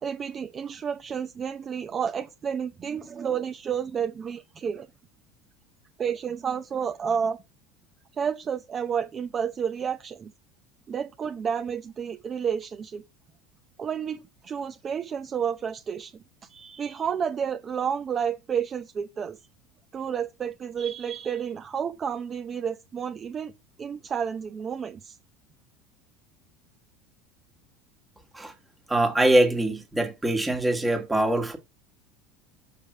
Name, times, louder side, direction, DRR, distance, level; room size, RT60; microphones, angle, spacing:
voice 1, 0.0-4.9 6.0-7.4 8.2-10.3 10.9-13.0 13.8-16.1 16.5-19.4 19.9-23.5 23.8-25.2, right 7 dB, 30° right, 0.6 m, -30 dB
voice 2, 28.9-31.6, right 1 dB, 10° right, 1.7 m, -23 dB
6.6 x 5.2 x 4.7 m
supercardioid pair, 130°, 0 cm